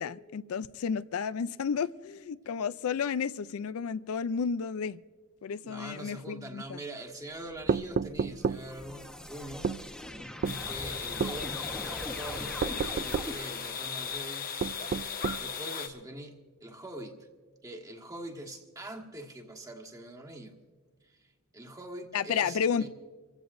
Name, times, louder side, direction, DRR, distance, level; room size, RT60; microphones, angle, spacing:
voice 1, 0.0-5.0 5.4-6.8 22.1-22.9, left 6 dB, 75° left, 0.4 m, -32 dB
voice 2, 5.6-9.7 10.7-14.5 15.4-17.3 17.6-20.5 21.5-22.9, right 1 dB, 15° right, 1.5 m, -43 dB
sound 1, 7.4-14.4, left 1 dB, 5° left, 1.0 m, -43 dB
sound 2, 7.7-8.6 9.6-9.8 10.4-10.6 11.2-11.4 12.6-13.3 14.6-15.4, right 5 dB, 40° right, 0.3 m, -30 dB
sound 3, 10.4-15.9, left 6 dB, 45° left, 1.2 m, -37 dB
27.0 x 15.5 x 2.6 m
head